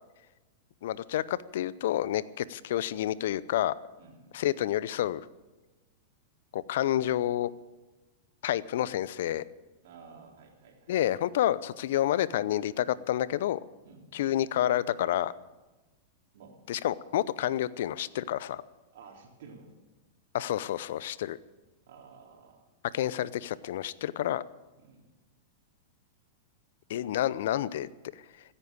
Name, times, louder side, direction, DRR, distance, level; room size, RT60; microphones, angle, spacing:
voice 1, 0.8-3.7 4.3-5.3 6.5-7.5 8.4-9.4 10.9-13.6 14.1-15.3 16.7-18.6 20.3-21.4 22.9-24.4 26.9-27.9, left 12 dB, 70° left, 19 dB, 0.7 m, -29 dB
voice 2, 4.0-4.4 9.8-10.9 13.8-14.1 16.3-16.6 18.9-19.7 21.9-22.7 24.8-25.1, right 5 dB, 65° right, 1 dB, 3.8 m, -52 dB
16.0 x 9.9 x 8.8 m, 1.1 s
hypercardioid pair, 110°, 0 cm